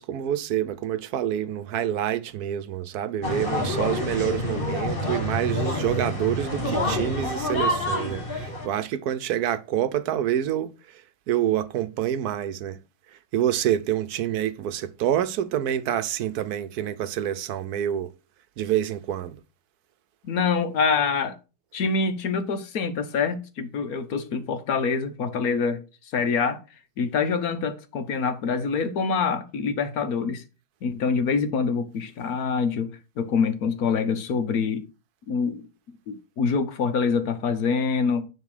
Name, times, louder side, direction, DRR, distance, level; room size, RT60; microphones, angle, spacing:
voice 1, 0.0-10.7 11.3-12.8 13.3-18.1 18.6-19.4, right 11 dB, 75° right, 1.2 m, -27 dB
sound 1, 3.2-8.7, left 1 dB, 35° left, 2.3 m, -27 dB
voice 2, 20.2-21.4 21.7-25.8 26.1-26.6 27.0-30.4 30.8-34.8 35.3-35.6 36.1-38.3, left 5 dB, 70° left, 1.4 m, -25 dB
10.5 x 3.6 x 4.9 m
omnidirectional pair, 1.7 m